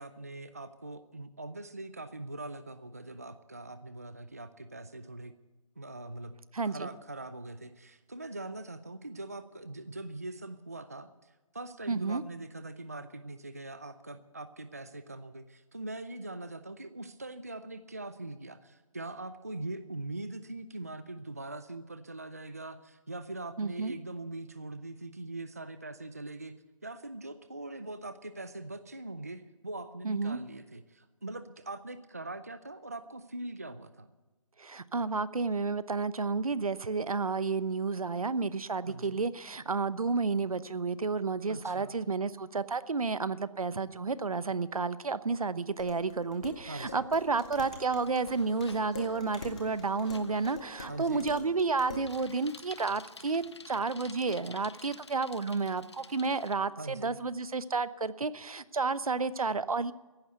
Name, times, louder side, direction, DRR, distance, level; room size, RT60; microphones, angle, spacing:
voice 1, 0.0-5.3 5.8-6.3 6.6-26.5 26.8-34.1 38.9-39.2 41.5-42.0 46.7-47.1 50.9-51.3 56.8-57.2, right 2 dB, 25° right, 12 dB, 0.5 m, -42 dB
voice 2, 6.5-6.9 11.9-12.2 23.6-23.9 30.0-30.4 34.6-59.9, right 4 dB, 80° right, 15 dB, 1.0 m, -31 dB
Dishes pots and pans, 45.8-52.1, left 2 dB, 10° left, 0.8 m, -45 dB
Bicycle, 47.1-56.6, left 4 dB, 50° left, 0.7 m, -52 dB
15.0 x 11.0 x 8.1 m, 1.2 s
hypercardioid pair, 180°, 18 cm